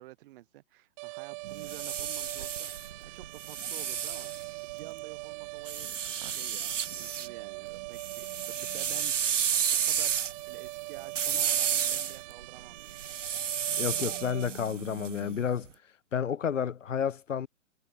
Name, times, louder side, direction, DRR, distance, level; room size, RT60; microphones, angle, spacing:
voice 1, 0.0-4.3 4.6-13.2, right 17 dB, 45° right, 5.1 m, -50 dB
sound 1, 1.0-14.5, right 28 dB, 25° right, 0.8 m, -43 dB
sound 2, 1.4-5.0 5.7-7.3 7.7-15.6, right 8 dB, 75° right, 2.5 m, -32 dB
voice 2, 13.8-15.7 16.1-17.5, left 8 dB, 80° left, 1.9 m, -30 dB
hypercardioid pair, 135°, 38 cm